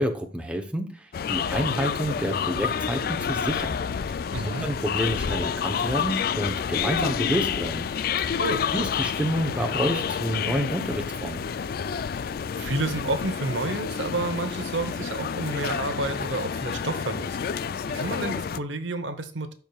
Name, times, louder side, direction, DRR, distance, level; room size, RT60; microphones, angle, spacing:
voice 1, 0.0-3.8 4.1-4.2 4.4-7.9 8.2-8.4 8.7-11.4, equal, 5° right, 0.8 m, -29 dB
sound 1, 1.1-18.6, left 7 dB, 50° left, 0.3 m, -29 dB
voice 2, 4.3-4.6 8.4-8.6 12.5-17.4 17.9-19.5, right 2 dB, 85° right, 1.0 m, -30 dB
12.5 x 4.6 x 2.3 m
head